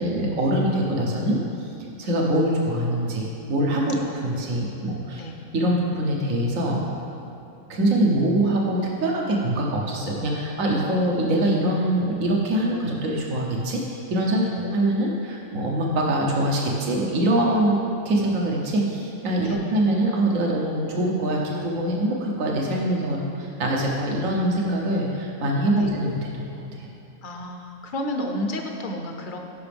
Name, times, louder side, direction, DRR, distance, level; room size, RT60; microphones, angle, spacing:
voice 1, 0.0-1.7 2.0-5.2 5.5-6.9 7.7-14.4 14.7-17.8 18.0-26.9, right 1 dB, 80° right, -2 dB, 1.5 m, -24 dB
voice 2, 19.4-19.8 25.7-26.0 27.2-29.4, equal, 45° left, 3 dB, 0.8 m, -32 dB
15.0 x 5.9 x 3.5 m, 2.6 s
omnidirectional pair, 1.4 m